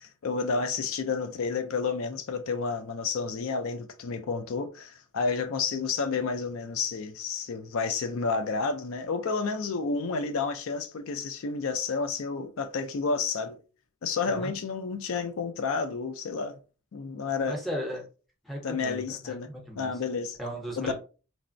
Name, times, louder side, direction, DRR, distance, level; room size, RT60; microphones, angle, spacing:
voice 1, 0.0-13.6 14.0-16.6 16.9-17.6 18.6-19.5 19.8-20.4 20.8-20.9, left 4 dB, 70° left, 0.4 m, -30 dB
voice 2, 17.5-18.1 18.4-19.9 20.4-20.9, equal, ahead, 0.6 m, -36 dB
3.2 x 2.0 x 2.5 m
head